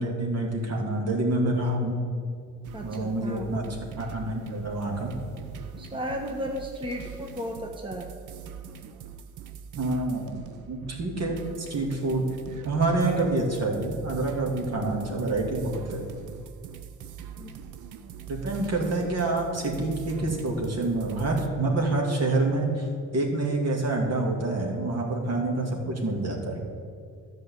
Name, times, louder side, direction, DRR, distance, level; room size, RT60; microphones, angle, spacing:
voice 1, 0.0-2.0 2.8-5.1 9.8-10.3 10.7-12.3 12.6-16.0 18.3-22.9 23.1-26.6, right 2 dB, 55° right, 0 dB, 2.4 m, -27 dB
sound 1, 2.6-21.5, right 8 dB, 80° right, 0.8 m, -42 dB
voice 2, 2.7-3.5 5.8-8.1 17.4-17.5, equal, 15° right, 2 dB, 1.2 m, -34 dB
11.5 x 5.3 x 8.3 m, 2.2 s
cardioid pair, 90°, 30 cm